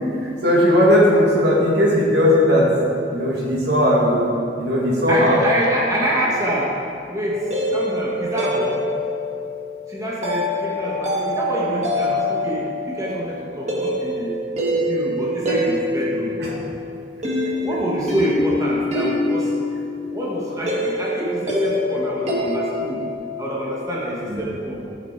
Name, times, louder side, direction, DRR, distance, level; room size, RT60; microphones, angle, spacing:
voice 1, 0.1-2.8 3.1-4.2 4.6-5.4 16.4-16.6 24.3-24.4, equal, 65° right, -4 dB, 2.1 m, -17 dB
voice 2, 5.1-6.7 7.1-8.9 9.9-14.3 14.7-16.4 17.6-19.5 20.1-23.0 23.4-24.8, equal, 20° right, -5 dB, 1.2 m, -26 dB
sound 1, 7.3-23.1, left 1 dB, 40° right, 1.7 m, -25 dB
13.5 x 5.7 x 4.5 m, 2.6 s
head